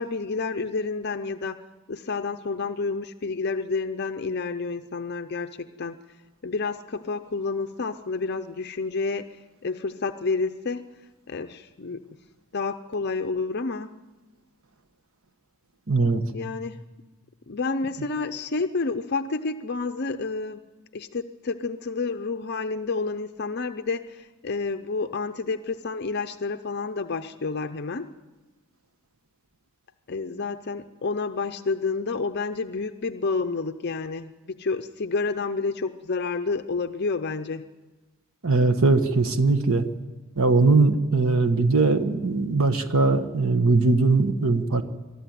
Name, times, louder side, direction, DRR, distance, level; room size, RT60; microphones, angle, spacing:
voice 1, 0.0-1.6 1.9-6.0 6.4-10.8 11.3-12.0 12.5-13.9 16.3-16.8 17.5-20.6 20.9-28.1 30.1-37.6, left 4 dB, 50° left, 8 dB, 0.6 m, -29 dB
voice 2, 15.9-16.2 38.4-39.9 40.4-44.8, right 3 dB, 70° right, 9 dB, 1.3 m, -20 dB
23.5 x 13.5 x 9.4 m, 1.2 s
head